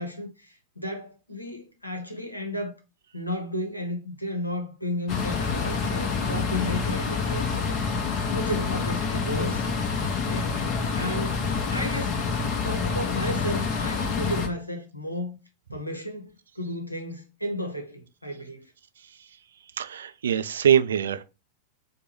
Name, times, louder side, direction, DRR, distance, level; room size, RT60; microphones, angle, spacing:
voice 1, 0.0-2.7 3.1-7.8 8.3-9.7 10.2-12.2 12.6-15.4 15.7-18.7, left 1 dB, 85° left, 0.8 m, -33 dB
sound 1, 5.1-14.5, left 5 dB, 35° left, 0.8 m, -27 dB
voice 2, 19.8-21.2, right 8 dB, 65° right, 0.3 m, -23 dB
4.4 x 2.2 x 3.1 m
figure-of-eight pair, 90°, 0 cm